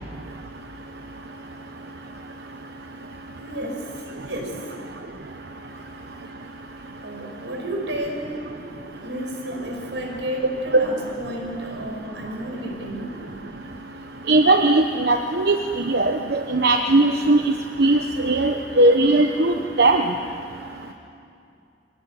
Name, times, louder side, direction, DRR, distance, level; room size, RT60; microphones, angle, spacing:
voice 1, 3.4-4.8 7.0-8.5 8.9-13.2, equal, 90° right, 1 dB, 5.4 m, -32 dB
voice 2, 14.3-17.5 17.8-20.0, right 2 dB, 60° right, 5 dB, 1.0 m, -18 dB
24.0 x 18.0 x 9.9 m, 2.5 s
head